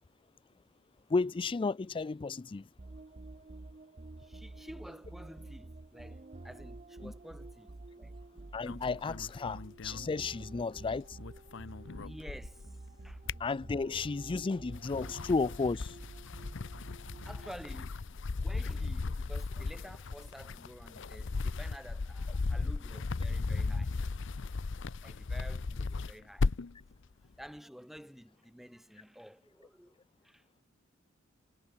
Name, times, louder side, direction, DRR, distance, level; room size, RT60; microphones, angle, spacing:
voice 1, 1.1-2.6 7.0-7.1 8.5-11.2 13.4-16.0, left 4 dB, 25° left, 0.4 m, -33 dB
sound 1, 2.8-17.9, right 2 dB, 35° right, 0.7 m, -49 dB
voice 2, 4.2-8.5 8.8-8.9 12.0-13.2 17.1-23.9 25.0-26.5 27.2-30.0 30.2-30.6, equal, ahead, 1.6 m, -51 dB
sound 2, 8.6-10.8 11.1-12.7 13.0-14.1 14.6-26.8, left 3 dB, 65° left, 0.7 m, -36 dB
head